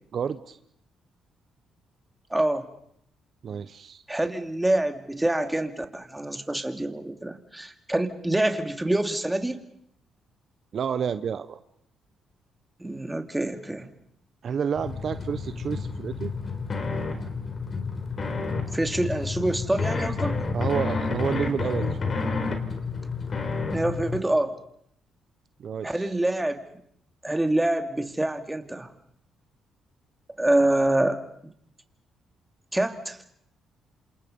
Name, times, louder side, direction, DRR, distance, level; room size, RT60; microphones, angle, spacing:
voice 1, 0.1-0.6 3.4-4.0 10.7-11.6 14.4-16.3 20.5-22.0 25.6-26.1, right 7 dB, 55° right, 12 dB, 1.0 m, -30 dB
voice 2, 2.3-2.7 4.1-9.6 12.8-13.9 18.7-20.4 23.7-24.5 25.8-26.6 27.2-28.9 30.4-31.2 32.7-33.2, right 1 dB, 10° right, 7 dB, 2.6 m, -26 dB
sound 1, 14.7-24.2, left 4 dB, 40° left, 4.1 m, -30 dB
28.0 x 27.0 x 5.5 m, 0.70 s
cardioid pair, 90°, 0 cm